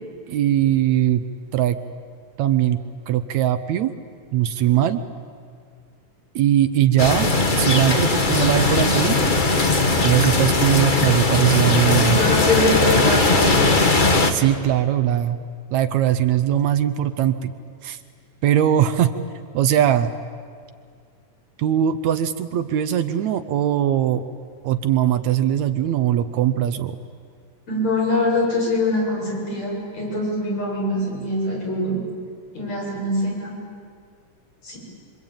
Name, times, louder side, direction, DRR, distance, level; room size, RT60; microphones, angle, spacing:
voice 1, 0.3-1.2 1.5-1.8 2.4-2.8 3.1-3.9 4.3-5.0 6.4-7.3 7.6-9.2 9.5-9.7 9.9-12.2 14.3-15.4 15.7-17.5 17.8-18.0 18.4-19.1 19.5-20.1 21.6-24.2 24.6-27.0, right 11 dB, 75° right, 10 dB, 2.0 m, -20 dB
sound 1, 7.0-14.3, left 3 dB, 35° left, 0.7 m, -19 dB
voice 2, 11.9-13.6 27.7-32.0 32.5-33.6 34.6-34.8, left 1 dB, 60° left, -4 dB, 8.7 m, -23 dB
26.5 x 24.5 x 8.9 m, 2.2 s
omnidirectional pair, 3.5 m